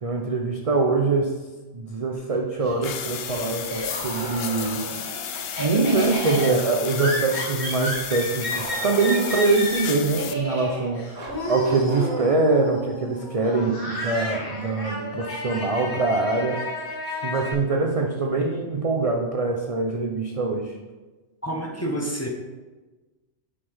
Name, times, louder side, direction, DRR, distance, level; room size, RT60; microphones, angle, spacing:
voice 1, 0.0-1.3 1.7-4.8 5.6-16.6 17.1-20.8, right 3 dB, 45° right, 2 dB, 0.5 m, -24 dB
Laughter, 2.1-4.3 4.6-17.5, equal, 85° left, 2.5 m, -32 dB
sound 1, 2.8-10.3, left 8 dB, 65° left, 0.8 m, -33 dB
Bark, 3.9-5.0 8.5-9.5 11.1-12.7 14.3-14.4 16.3-16.4 17.5-17.6, right 2 dB, 90° right, 1.8 m, -35 dB
voice 2, 21.4-22.3, right 1 dB, 15° left, -1 dB, 0.8 m, -28 dB
8.6 x 5.5 x 3.4 m, 1.2 s
omnidirectional pair, 1.3 m